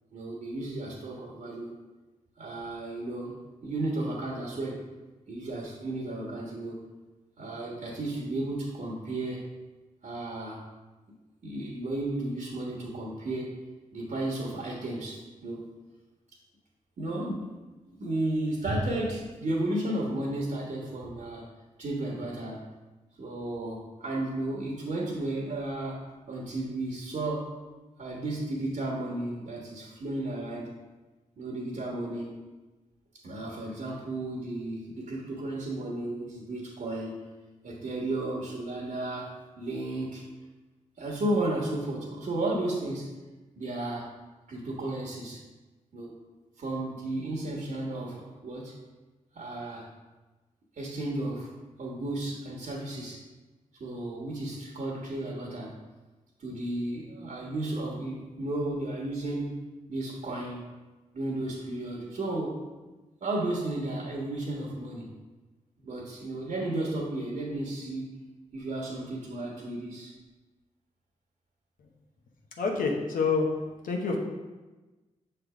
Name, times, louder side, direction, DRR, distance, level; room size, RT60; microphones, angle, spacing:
voice 1, 0.1-1.7 2.4-3.3 3.6-4.8 5.3-6.8 7.4-9.4 10.0-10.6 11.4-13.5 13.9-15.6 17.0-17.5 18.0-21.4 21.8-22.6 23.2-26.0 26.3-27.5 28.0-30.7 31.4-32.4 33.2-37.2 37.6-39.3 39.6-40.2 41.0-43.0 43.6-44.1 44.5-45.4 45.9-46.1 46.6-48.7 49.3-49.9 50.8-51.5 51.8-53.2 53.8-55.7 56.4-59.5 59.9-60.7 61.1-62.6 63.2-65.1 65.8-68.1 68.5-70.1, right 1 dB, 60° right, -3 dB, 1.3 m, -33 dB
voice 2, 72.6-73.5 73.8-74.2, left 4 dB, 75° left, 1 dB, 1.0 m, -27 dB
5.9 x 3.3 x 4.9 m, 1.2 s
cardioid pair, 55°, 14 cm